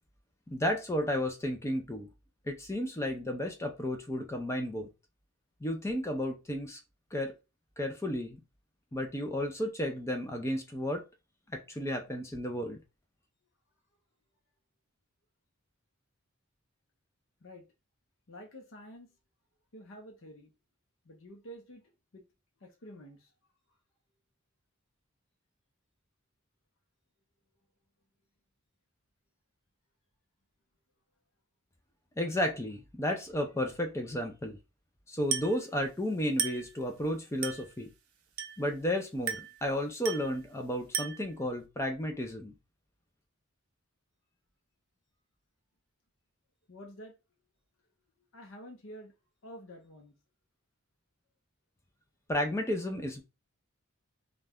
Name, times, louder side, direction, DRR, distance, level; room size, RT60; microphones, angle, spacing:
voice 1, 0.5-2.1 2.5-4.9 5.6-6.8 7.1-7.3 7.8-8.4 8.9-11.0 11.5-12.8 32.2-34.6 35.1-37.9 38.6-42.5 52.3-53.2, left 1 dB, 10° left, 0.4 m, -33 dB
voice 2, 18.3-19.2 19.7-20.5 21.1-21.8 22.1-22.2 22.6-23.3 46.7-47.2 48.3-49.1 49.4-50.1, equal, 60° left, 0.6 m, -49 dB
Glass, 35.3-35.7 36.4-36.7 37.4-37.7 38.4-38.7 39.3-39.6 40.0-40.4 40.9-41.4, right 7 dB, 75° right, 0.5 m, -35 dB
2.5 x 2.2 x 3.4 m
head